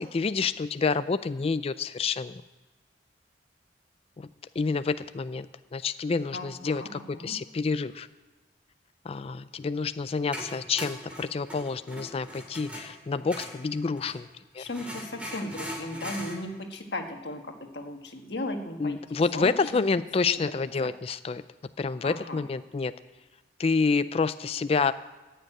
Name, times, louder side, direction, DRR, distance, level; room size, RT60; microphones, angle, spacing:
voice 1, 0.0-2.4 4.2-4.3 4.6-8.1 9.0-14.3 14.5-14.6 18.8-21.4 21.8-22.9 23.6-24.9, left 4 dB, 30° left, 13 dB, 0.3 m, -28 dB
voice 2, 6.3-7.3 14.6-19.0 19.3-19.5 20.2-20.9 22.0-22.4, left 1 dB, 65° left, 4 dB, 1.5 m, -36 dB
sound 1, 9.7-14.2 14.7-16.4, equal, 5° right, 2.5 m, -40 dB
14.5 x 6.8 x 9.0 m, 1.2 s
head